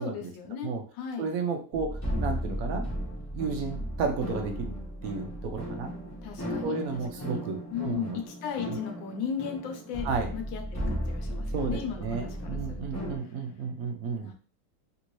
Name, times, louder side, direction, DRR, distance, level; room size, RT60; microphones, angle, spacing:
voice 1, 0.0-1.3 6.2-6.8 7.2-7.4 7.7-10.1 10.3-13.4 14.2-14.3, left 7 dB, 85° left, 4 dB, 1.4 m, -37 dB
voice 2, 1.2-2.9 3.3-4.7 5.0-5.9 6.6-8.2 10.0-10.3 11.5-14.3, right 4 dB, 70° right, 4 dB, 0.9 m, -32 dB
sound 1, 1.7-13.2, equal, 20° left, 0.5 m, -35 dB
3.4 x 2.6 x 3.0 m, 0.37 s
omnidirectional pair, 1.9 m